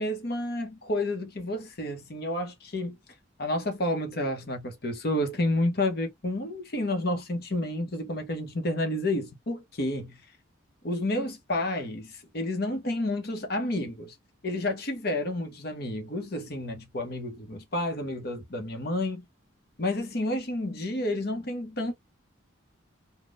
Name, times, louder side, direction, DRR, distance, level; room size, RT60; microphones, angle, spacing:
voice 1, 0.0-3.0 3.4-10.2 10.8-14.1 14.4-19.2 19.8-21.9, left 1 dB, 50° left, 0.9 m, -30 dB
3.6 x 2.2 x 2.4 m
head